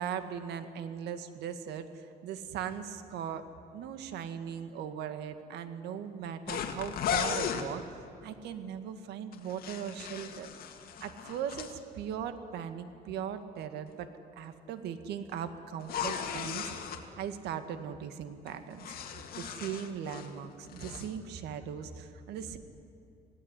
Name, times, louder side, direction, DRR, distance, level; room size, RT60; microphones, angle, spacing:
voice 1, 0.0-7.8 8.2-10.5 11.0-22.6, right 8 dB, 80° right, 9 dB, 1.9 m, -39 dB
sound 1, 6.5-7.7 9.3-11.7 15.8-17.0 18.5-20.3 20.6-21.1, left 8 dB, 60° left, 2.1 m, -36 dB
26.5 x 17.5 x 9.9 m, 2.6 s
cardioid pair, 110°, 17 cm